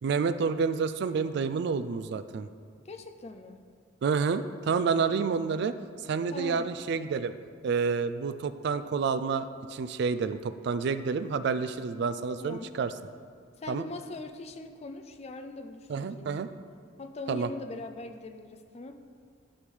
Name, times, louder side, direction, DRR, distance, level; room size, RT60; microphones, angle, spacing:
voice 1, 0.0-2.5 4.0-5.8 6.0-7.3 7.6-12.9 13.7-13.8 15.9-16.5 17.3-17.5, right 5 dB, 60° right, 12 dB, 0.3 m, -29 dB
voice 2, 2.8-3.6 6.3-6.7 12.4-12.7 13.6-16.4 17.0-19.0, left 2 dB, 35° left, 7 dB, 0.4 m, -41 dB
11.5 x 5.3 x 3.2 m, 2.1 s
head